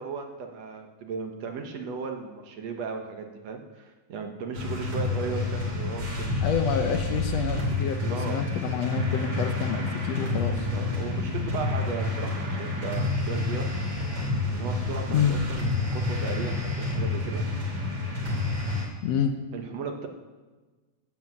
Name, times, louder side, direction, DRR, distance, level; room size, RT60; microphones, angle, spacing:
voice 1, 0.0-6.3 7.7-8.4 10.7-13.7 14.5-17.4 19.5-20.1, right 5 dB, 65° right, 4 dB, 2.3 m, -36 dB
sound 1, 4.5-18.8, left 2 dB, 40° right, 3.5 m, -29 dB
voice 2, 6.4-10.7 15.1-15.4 19.0-19.3, left 8 dB, 70° left, 7 dB, 1.8 m, -28 dB
14.0 x 8.2 x 7.4 m, 1.3 s
omnidirectional pair, 3.4 m